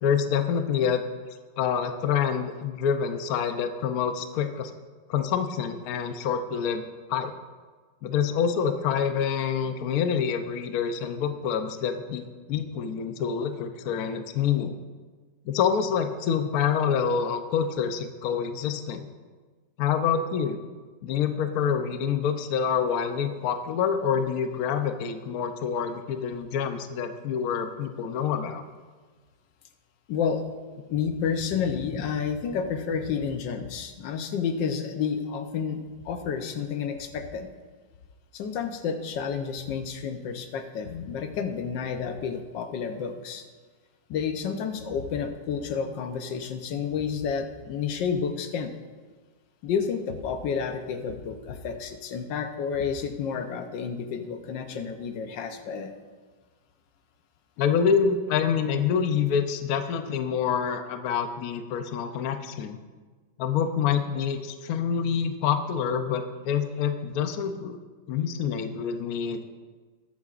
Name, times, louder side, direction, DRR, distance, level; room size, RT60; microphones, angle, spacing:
voice 1, 0.0-1.0 1.6-4.7 5.1-6.8 7.1-7.3 8.0-14.8 15.5-19.1 19.8-20.6 21.0-28.6 57.6-62.8 63.4-67.8 68.1-69.4, left 7 dB, 65° left, 8 dB, 1.1 m, -27 dB
voice 2, 30.1-30.4 30.9-35.8 36.0-37.5 38.3-43.4 44.1-48.7 49.6-55.9, left 6 dB, 90° left, 7 dB, 1.5 m, -30 dB
21.0 x 7.9 x 2.5 m, 1.4 s
omnidirectional pair, 1.9 m